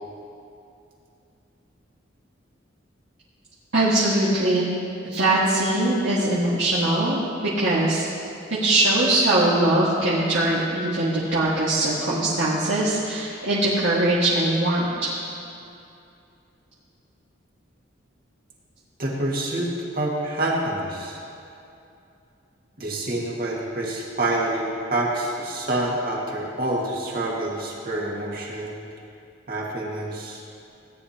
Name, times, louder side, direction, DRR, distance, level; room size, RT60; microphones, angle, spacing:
voice 1, 3.7-4.7 5.0-7.2 7.6-8.1 8.5-15.1, right 1 dB, 75° right, -10 dB, 1.8 m, -21 dB
voice 2, 19.0-21.2 22.8-28.8 29.5-30.4, right 1 dB, 50° right, -3 dB, 2.0 m, -27 dB
17.5 x 9.8 x 2.9 m, 2.6 s
head